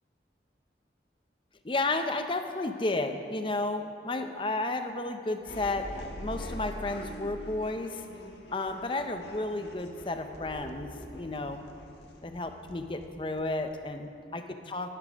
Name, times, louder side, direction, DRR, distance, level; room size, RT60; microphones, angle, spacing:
voice 1, 1.6-8.0 8.5-11.6 12.2-14.9, left 2 dB, 30° left, 7 dB, 0.6 m, -32 dB
sound 1, 5.4-14.1, left 1 dB, 75° left, 1.3 m, -44 dB
12.0 x 10.0 x 5.1 m, 2.5 s
head